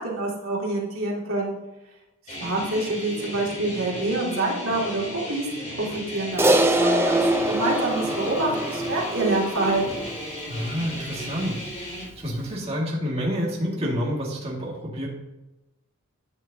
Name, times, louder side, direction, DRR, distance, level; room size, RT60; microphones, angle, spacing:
voice 1, 0.0-1.6 2.4-10.0, right 2 dB, 80° right, -3 dB, 2.5 m, -27 dB
sound 1, 2.3-12.0, equal, 35° left, 3.2 m, -35 dB
Crash cymbal, 6.4-11.0, right 1 dB, 10° right, 0.6 m, -24 dB
voice 2, 10.5-15.1, equal, 30° right, -4 dB, 2.0 m, -29 dB
12.5 x 8.5 x 2.8 m, 0.99 s
head